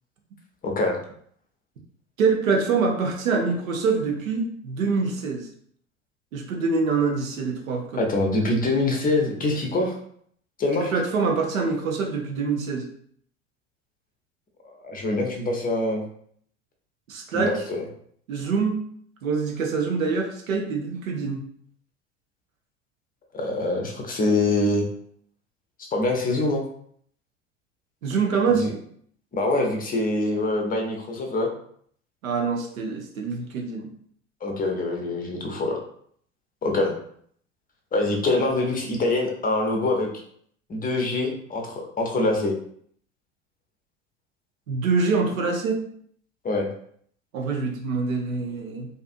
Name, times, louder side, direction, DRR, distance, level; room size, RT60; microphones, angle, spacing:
voice 1, 0.6-1.0 8.0-9.9 10.6-10.9 14.6-16.0 17.3-17.8 23.3-24.9 25.8-26.7 28.5-28.7 29.3-31.5 34.4-35.8 36.6-37.0 37.9-40.1 40.7-42.5 46.4-46.7, left 2 dB, 20° left, 1 dB, 0.6 m, -24 dB
voice 2, 2.2-5.5 6.3-8.0 10.8-12.9 17.1-17.6 18.3-18.8 19.2-21.4 28.0-28.7 32.2-33.9 44.7-45.8 47.3-48.9, right 4 dB, 85° right, 1 dB, 0.7 m, -25 dB
2.5 x 2.4 x 2.5 m, 0.63 s
hypercardioid pair, 75°, 40 cm